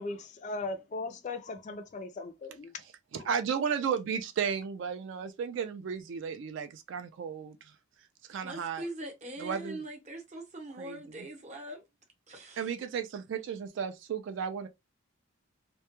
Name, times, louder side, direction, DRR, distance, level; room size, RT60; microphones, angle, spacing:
voice 1, 0.0-2.7 3.2-3.3, left 3 dB, 35° left, 0.3 m, -38 dB
voice 2, 3.1-7.6 8.3-8.8 9.4-9.8 10.8-11.0 12.6-14.7, right 7 dB, 60° right, 0.3 m, -34 dB
voice 3, 8.4-11.8 12.3-12.7, right 1 dB, 35° right, 0.7 m, -42 dB
2.2 x 2.1 x 2.9 m
head